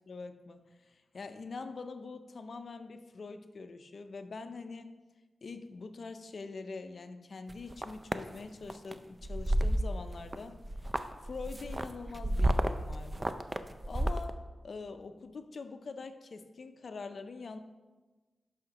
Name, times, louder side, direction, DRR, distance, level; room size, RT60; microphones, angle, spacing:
voice 1, 0.0-4.9 5.4-10.6 11.2-13.3 13.9-17.6, left 4 dB, 65° left, 9 dB, 0.5 m, -44 dB
sound 1, 7.5-8.2 8.7-8.9 9.2-10.4 10.6-14.3, right 1 dB, 25° right, 0.4 m, -31 dB
11.5 x 4.9 x 2.9 m, 1.2 s
cardioid pair, 65°, 0 cm